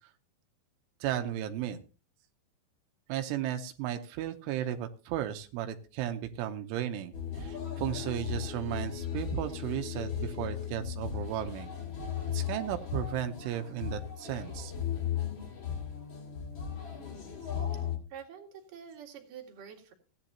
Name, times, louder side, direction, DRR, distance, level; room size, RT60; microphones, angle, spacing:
voice 1, 1.0-1.8 3.1-11.7 12.3-14.7, right 11 dB, 85° right, 7 dB, 3.3 m, -35 dB
sound 1, 7.1-18.0, left 9 dB, 45° left, 1.7 m, -36 dB
voice 2, 18.1-19.9, right 8 dB, 55° right, 2 dB, 3.2 m, -47 dB
16.5 x 11.0 x 2.9 m, 0.34 s
omnidirectional pair, 5.5 m